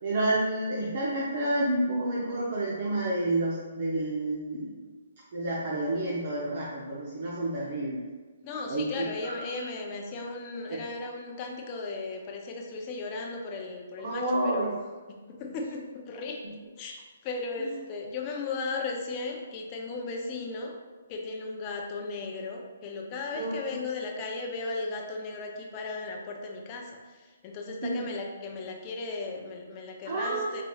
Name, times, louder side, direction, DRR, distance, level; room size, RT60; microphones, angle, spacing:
voice 1, 0.0-4.7 5.3-8.0 8.7-9.6 10.7-10.8 14.0-14.7 17.6-17.7 23.3-23.7 27.8-28.0 30.0-30.6, right 1 dB, 55° right, -6 dB, 0.7 m, -29 dB
voice 2, 8.4-14.7 15.1-16.5 16.8-20.8 21.1-30.6, left 3 dB, 30° left, 0 dB, 0.6 m, -36 dB
4.1 x 3.0 x 2.3 m, 1.4 s
hypercardioid pair, 140°, 0 cm